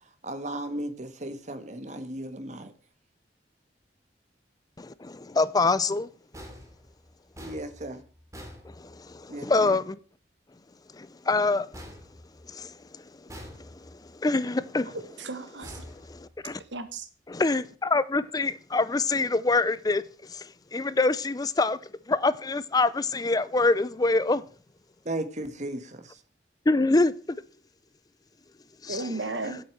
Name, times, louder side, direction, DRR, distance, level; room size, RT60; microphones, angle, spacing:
voice 1, 0.2-2.7 7.4-8.0 9.3-9.8 25.0-26.0, right 1 dB, 40° right, 1.5 m, -35 dB
voice 2, 4.8-6.1 8.8-10.0 11.0-11.7 12.5-12.7 14.2-15.0 15.8-16.6 17.3-20.0 20.3-20.4 20.7-21.8 22.1-24.4 26.7-27.1 28.8-29.1 29.4-29.6, left 3 dB, 20° left, 0.4 m, -25 dB
sound 1, 6.3-9.4 11.7-12.8 13.3-14.1 15.6-16.7, equal, 20° right, 2.5 m, -46 dB
voice 3, 14.9-15.9 16.7-17.1 28.9-29.6, right 2 dB, 90° right, 1.5 m, -34 dB
8.3 x 8.1 x 7.6 m
head